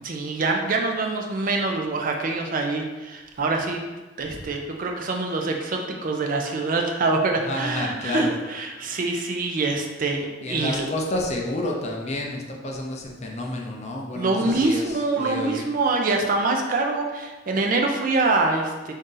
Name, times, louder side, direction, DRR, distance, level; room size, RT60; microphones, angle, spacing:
voice 1, 0.0-3.8 4.2-10.9 14.1-18.9, right 3 dB, 45° right, 2 dB, 0.4 m, -25 dB
voice 2, 7.4-8.3 10.4-15.6, left 1 dB, 35° left, 0 dB, 0.5 m, -30 dB
3.7 x 2.7 x 3.8 m, 1.2 s
head